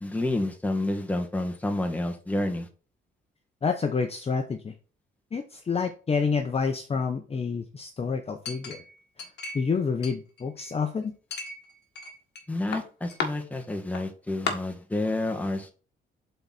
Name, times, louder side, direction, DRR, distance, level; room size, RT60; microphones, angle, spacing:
voice 1, 0.0-2.7 12.5-15.7, left 1 dB, 5° left, 4 dB, 1.5 m, -29 dB
voice 2, 3.6-4.7 5.3-8.8 9.5-11.1, left 5 dB, 30° left, 6 dB, 0.8 m, -28 dB
Chink clink, 8.4-9.7 10.0-10.8 11.3-12.4 12.7-13.3 13.9-14.0 14.5-14.6, left 5 dB, 60° left, 1.6 m, -34 dB
7.9 x 4.1 x 4.1 m, 0.36 s
cardioid pair, 90°, 20 cm